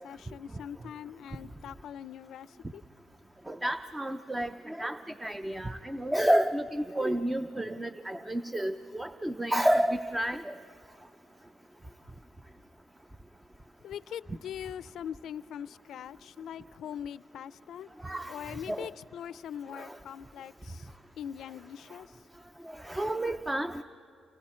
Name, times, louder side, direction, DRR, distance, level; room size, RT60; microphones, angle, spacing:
voice 1, 0.0-2.8 13.8-17.9 18.3-20.9 21.2-22.3, left 9 dB, 70° left, 0.5 m, -42 dB
voice 2, 3.5-10.5 18.0-18.9 19.7-20.0 22.7-23.8, right 1 dB, 10° right, 0.6 m, -30 dB
29.5 x 27.5 x 4.4 m
cardioid pair, 90°, 0 cm